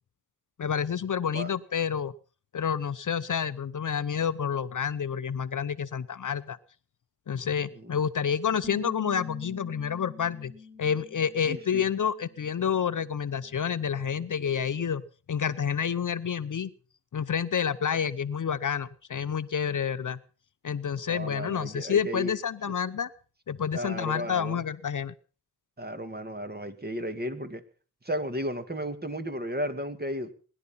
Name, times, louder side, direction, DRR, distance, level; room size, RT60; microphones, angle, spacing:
voice 1, 0.6-2.1 2.5-6.6 7.3-10.5 10.8-15.0 15.3-16.7 17.1-20.2 20.6-23.1 23.5-25.1, left 7 dB, 50° left, 14 dB, 0.8 m, -29 dB
voice 2, 7.7-8.1 11.4-11.9 21.1-22.3 23.7-24.6 25.8-27.6 28.0-30.3, equal, 25° right, 8 dB, 2.2 m, -34 dB
Bass guitar, 8.6-14.9, left 4 dB, 10° right, 6.9 m, -47 dB
21.0 x 11.0 x 5.6 m, 0.39 s
cardioid pair, 80°, 39 cm